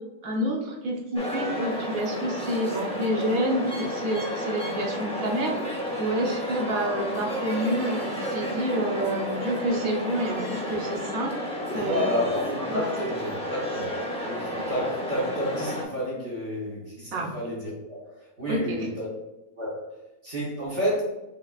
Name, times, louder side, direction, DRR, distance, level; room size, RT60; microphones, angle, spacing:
voice 1, 0.2-5.6 6.0-11.3 11.7-12.2 12.7-12.9 14.5-14.8 17.1-17.3 18.5-18.9, right 1 dB, 70° right, 0 dB, 1.3 m, -28 dB
sound 1, 1.2-15.8, equal, 5° left, 0.4 m, -31 dB
voice 2, 11.7-18.1 18.4-19.1 19.6-19.9 20.2-21.0, equal, 55° right, -5 dB, 1.4 m, -30 dB
5.7 x 3.5 x 2.4 m, 0.97 s
omnidirectional pair, 1.5 m